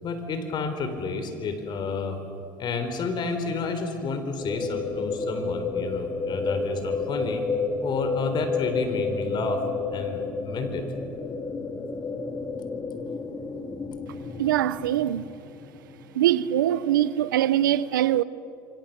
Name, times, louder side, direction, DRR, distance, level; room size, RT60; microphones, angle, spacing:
voice 1, 0.0-2.2 2.6-7.4 7.8-9.7 9.9-10.8, left 4 dB, 45° left, 3.9 m, -30 dB
sound 1, 4.4-16.6, left 4 dB, 30° left, 2.7 m, -31 dB
voice 2, 14.4-15.3 16.1-18.2, right 12 dB, 90° right, 0.7 m, -22 dB
28.5 x 24.5 x 6.8 m
hypercardioid pair, 85°, 10 cm